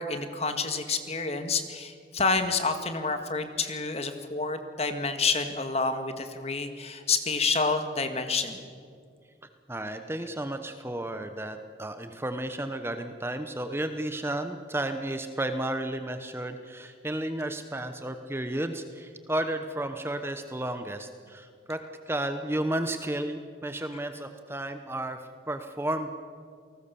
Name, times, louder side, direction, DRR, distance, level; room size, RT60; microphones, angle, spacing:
voice 1, 0.0-8.7, left 4 dB, 35° left, 7 dB, 1.8 m, -28 dB
voice 2, 9.7-26.1, right 1 dB, 15° right, 8 dB, 1.0 m, -33 dB
29.0 x 19.0 x 7.0 m, 2.2 s
head